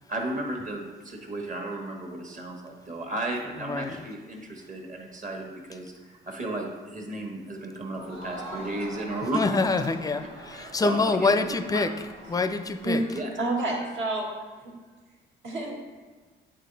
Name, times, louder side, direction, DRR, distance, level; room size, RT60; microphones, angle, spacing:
voice 1, 0.1-9.7 10.5-11.3 11.7-11.9 12.4-12.5 13.1-13.3 13.8-13.9, right 2 dB, 40° right, 1 dB, 1.4 m, -34 dB
voice 2, 3.6-4.0 9.3-11.9 12.3-13.0, left 3 dB, 20° left, 10 dB, 0.4 m, -26 dB
Crowd, 7.9-13.3, right 1 dB, 80° right, 1.4 m, -44 dB
voice 3, 13.4-14.3 14.6-14.7 15.4-15.8, right 2 dB, 65° right, -2 dB, 1.8 m, -28 dB
8.4 x 3.9 x 4.0 m, 1.4 s
cardioid pair, 90°, 20 cm